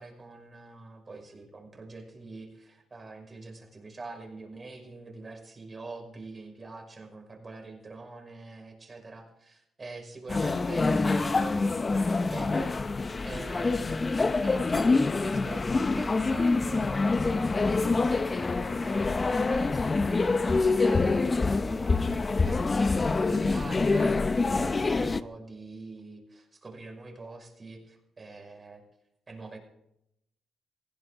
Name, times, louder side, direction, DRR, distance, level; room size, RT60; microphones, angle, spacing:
voice 1, 0.0-12.8 13.2-22.6 23.1-28.8 29.3-29.6, right 3 dB, 30° right, 2 dB, 5.8 m, -44 dB
sound 1, 10.3-25.2, left 3 dB, 30° left, 0.8 m, -26 dB
19.5 x 16.0 x 3.9 m, 0.79 s
cardioid pair, 90°, 0 cm